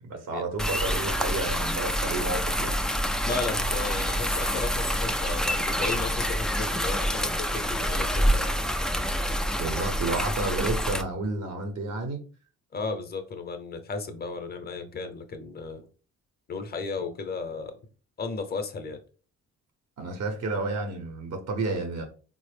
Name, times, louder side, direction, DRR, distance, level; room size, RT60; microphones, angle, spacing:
voice 1, 0.0-2.7 9.6-12.2 20.0-22.1, right 3 dB, 55° right, 0.9 m, -31 dB
sound 1, 0.6-11.0, equal, ahead, 0.3 m, -27 dB
voice 2, 3.2-8.5 12.7-15.9 16.5-17.8 18.2-19.0, left 4 dB, 30° left, 0.7 m, -34 dB
4.1 x 2.0 x 3.3 m
cardioid pair, 90°, 30 cm